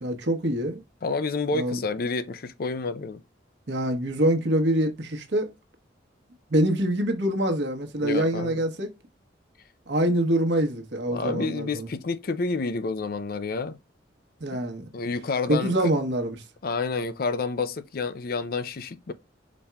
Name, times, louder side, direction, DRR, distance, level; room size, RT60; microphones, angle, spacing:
voice 1, 0.0-0.8 1.5-1.8 3.7-5.5 6.5-8.9 9.9-11.9 14.4-14.9 15.5-16.3, right 1 dB, 70° right, 1.1 m, -25 dB
voice 2, 1.0-3.2 8.0-8.6 11.1-13.8 14.9-15.7 16.6-19.1, left 4 dB, 50° left, 0.5 m, -29 dB
5.3 x 4.2 x 2.3 m
head